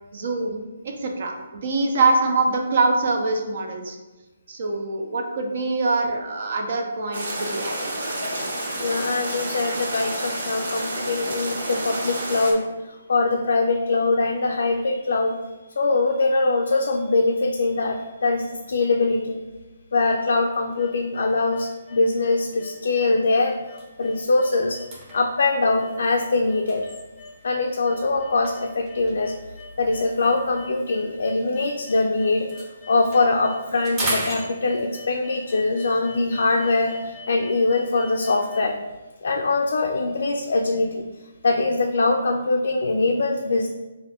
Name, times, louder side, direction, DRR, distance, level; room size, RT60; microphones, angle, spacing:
voice 1, 0.1-0.6 1.0-4.0 4.5-7.9, right 3 dB, 55° right, 2 dB, 0.6 m, -24 dB
sound 1, 7.1-12.5, right 1 dB, 75° right, 1.1 m, -29 dB
voice 2, 8.8-15.4 15.7-19.4 19.9-24.8 25.1-26.9 27.4-29.3 29.8-32.5 32.9-38.8 39.2-41.1 41.4-43.7, left 3 dB, 70° left, 2 dB, 0.3 m, -22 dB
sound 2, 20.8-38.7, left 3 dB, 10° left, 0.6 m, -44 dB
sound 3, 22.7-22.8 23.2-23.3 23.6-27.6 28.4-32.0 32.3-35.1, right 1 dB, 20° right, 0.9 m, -36 dB
3.7 x 2.5 x 3.4 m, 1.1 s
hypercardioid pair, 160°, 0 cm